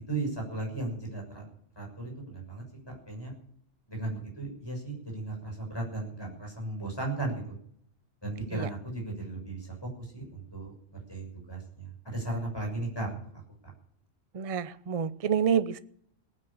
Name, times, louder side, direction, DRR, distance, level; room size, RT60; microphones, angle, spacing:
voice 1, 0.1-1.5 1.8-3.3 3.9-7.5 8.2-10.7 11.1-13.4, right 2 dB, 20° left, -1 dB, 6.7 m, -36 dB
voice 2, 14.3-15.8, right 7 dB, 40° right, 14 dB, 0.6 m, -28 dB
18.0 x 9.7 x 7.2 m, 0.66 s
omnidirectional pair, 1.3 m